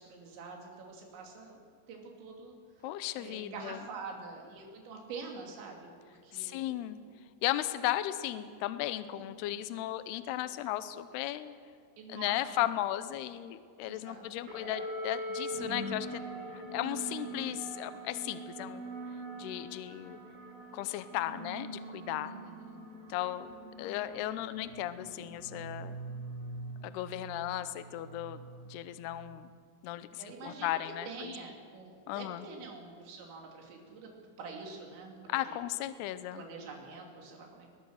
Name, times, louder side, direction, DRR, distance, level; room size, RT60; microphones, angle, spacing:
voice 1, 0.0-1.6 1.9-2.9 3.2-6.7 9.1-9.3 12.0-12.6 13.8-14.6 22.2-22.8 30.2-34.1 34.4-35.6 36.3-37.7, right 4 dB, 85° right, 1 dB, 5.0 m, -46 dB
voice 2, 2.8-3.8 6.3-7.0 7.4-11.5 12.1-16.2 16.5-18.8 19.4-20.2 20.7-22.3 23.1-23.5 23.8-26.0 26.8-29.5 29.8-31.3 32.1-32.5 35.3-36.5, left 14 dB, 80° left, 12 dB, 2.6 m, -36 dB
sound 1, 14.5-29.2, right 1 dB, 60° right, 8.5 m, -43 dB
22.0 x 21.0 x 6.5 m, 2.1 s
omnidirectional pair, 5.1 m